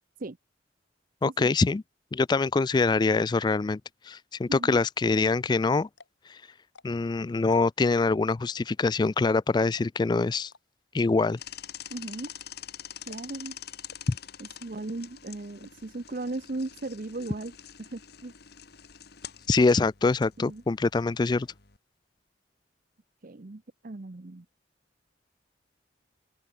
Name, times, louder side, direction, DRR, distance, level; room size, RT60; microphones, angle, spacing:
voice 1, 1.2-1.8 2.1-3.8 4.1-5.9 6.3-6.4 6.8-10.5 10.9-11.4 14.1-14.2 19.5-21.5, left 3 dB, 25° left, 0.3 m, -24 dB
sound 1, 5.1-5.4 5.9-6.3 6.6-7.1 7.5-7.9 8.3-8.6 9.0-9.1 9.4-9.5 9.7-10.1 10.5-10.6 11.2-11.7 12.1-12.4 12.6-12.7 13.1-13.4 13.9-14.3 14.7-15.1 15.6-15.7 16.0-16.1 16.4-16.8 17.1-17.7, left 4 dB, 85° left, 3.2 m, -55 dB
sound 2, 11.4-21.8, left 9 dB, 60° left, 1.7 m, -46 dB
voice 2, 11.9-12.3 13.1-13.6 14.4-17.5 17.8-18.3 20.4-20.6 23.2-24.5, right 2 dB, 50° right, 0.8 m, -37 dB
open air
head